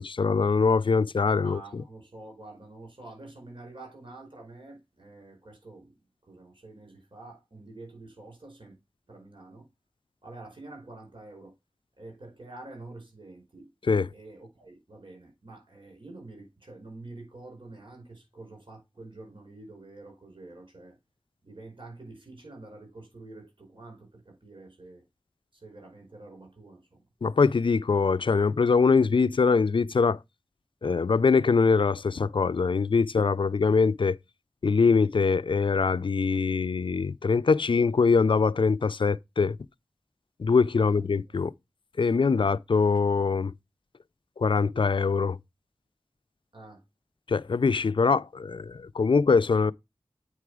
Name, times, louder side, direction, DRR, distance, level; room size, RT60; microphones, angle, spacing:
voice 1, 0.0-1.6 13.9-14.1 27.2-30.2 30.8-34.2 34.6-39.6 40.4-41.5 42.0-43.5 44.4-45.4 47.3-49.7, left 4 dB, 60° left, 0.4 m, -23 dB
voice 2, 1.4-5.9 6.2-8.7 9.1-9.7 10.2-11.5 12.0-13.7 14.1-21.0 21.4-25.0 25.5-27.0 40.8-41.5 46.5-46.8, right 2 dB, 60° right, 4.8 m, -47 dB
8.5 x 4.8 x 4.8 m
wide cardioid pair, 45°, 10 cm